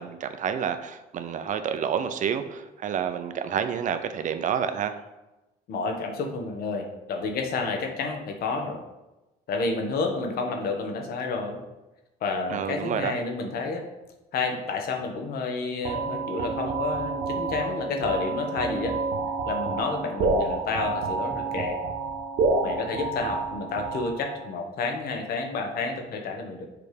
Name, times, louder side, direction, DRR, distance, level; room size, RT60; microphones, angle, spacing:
voice 1, 0.0-4.9 12.5-13.1, right 8 dB, 50° right, 9 dB, 0.5 m, -29 dB
voice 2, 5.7-8.8 9.5-11.6 12.2-13.8 14.3-18.9 19.5-21.8 22.6-26.7, left 4 dB, 65° left, 3 dB, 1.2 m, -30 dB
sound 1, 15.9-24.6, right 3 dB, 75° right, 0.9 m, -29 dB
6.8 x 3.3 x 5.1 m, 1.0 s
cardioid pair, 110°, 17 cm